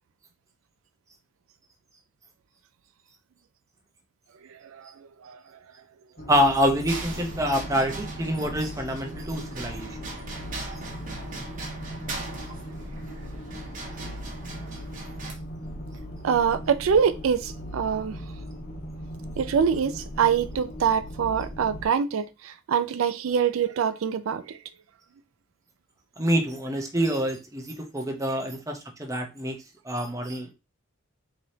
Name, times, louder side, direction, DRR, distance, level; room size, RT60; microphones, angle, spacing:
voice 1, 4.5-5.4 13.2-13.3 16.2-18.2 19.4-24.6, right 7 dB, 85° right, 0.4 m, -25 dB
sound 1, 6.2-21.9, equal, 45° left, 0.9 m, -38 dB
voice 2, 6.3-9.9 26.2-29.6 29.8-30.5, equal, 15° right, 0.8 m, -26 dB
sound 2, 6.9-15.3, right 3 dB, 40° right, 1.2 m, -40 dB
4.8 x 3.1 x 2.7 m
head